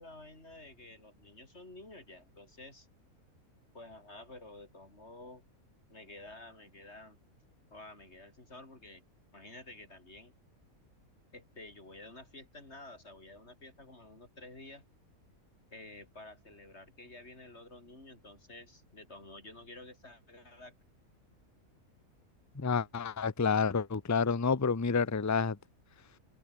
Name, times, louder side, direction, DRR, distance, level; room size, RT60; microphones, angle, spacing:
voice 1, 0.0-2.9 3.7-5.4 5.9-7.2 7.7-9.0 9.3-10.3 11.3-14.8 15.7-20.7, left 2 dB, 45° left, 4.6 m, -51 dB
voice 2, 22.6-25.6, left 5 dB, 15° left, 0.6 m, -29 dB
open air
omnidirectional pair, 1.5 m